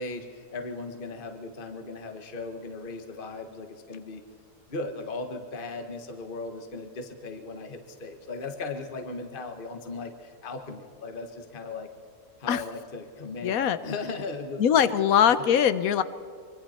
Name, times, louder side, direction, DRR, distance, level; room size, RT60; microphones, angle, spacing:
voice 1, 0.0-4.2 4.7-11.9 12.4-15.0, left 3 dB, 35° left, 6 dB, 1.5 m, -37 dB
voice 2, 13.4-13.8 14.6-16.0, left 9 dB, 65° left, 14 dB, 1.2 m, -21 dB
25.0 x 24.5 x 4.3 m, 2.3 s
omnidirectional pair, 1.7 m